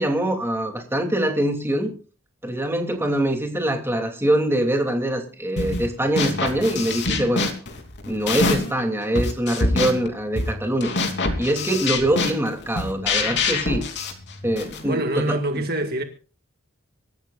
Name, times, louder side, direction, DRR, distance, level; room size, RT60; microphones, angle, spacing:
voice 1, 0.0-1.9 2.4-7.5 8.1-10.9 11.4-13.8 14.4-15.6, right 1 dB, 10° right, 2.9 m, -24 dB
sound 1, 5.6-5.9 6.2-8.8 9.1-14.9, left 3 dB, 55° left, 3.3 m, -25 dB
voice 2, 14.8-16.0, right 1 dB, 50° right, 1.9 m, -25 dB
25.5 x 14.5 x 2.5 m
head